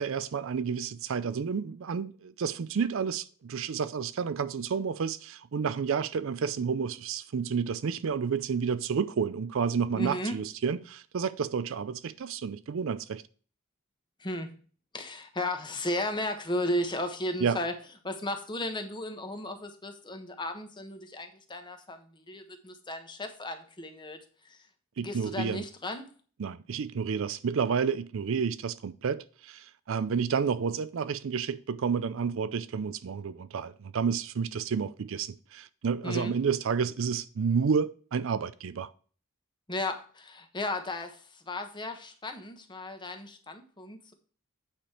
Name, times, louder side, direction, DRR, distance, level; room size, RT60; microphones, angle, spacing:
voice 1, 0.0-13.2 17.4-17.6 25.0-25.6 26.4-38.9, right 6 dB, 65° right, 0.4 m, -30 dB
voice 2, 9.9-10.4 14.2-14.5 14.9-17.7 18.0-24.2 24.5-24.6 25.0-26.1 36.0-36.3 39.7-44.1, left 1 dB, 20° left, 1.1 m, -35 dB
8.7 x 5.1 x 4.3 m
head